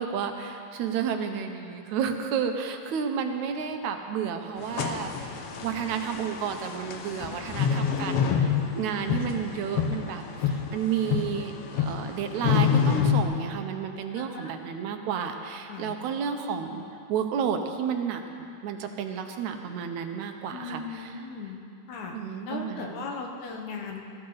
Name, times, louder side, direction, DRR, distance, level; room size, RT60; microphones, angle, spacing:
voice 1, 0.0-5.3 5.6-16.8 17.1-21.1 22.1-23.1, right 7 dB, 80° right, 5 dB, 2.3 m, -31 dB
sound 1, 4.6-13.2, left 7 dB, 65° left, 1.8 m, -28 dB
voice 2, 7.2-7.5 14.2-14.5 15.7-16.0 20.5-21.6 21.9-22.1 22.5-24.0, left 4 dB, 80° left, 1 dB, 2.7 m, -38 dB
19.5 x 14.0 x 4.0 m, 2.5 s
omnidirectional pair, 3.4 m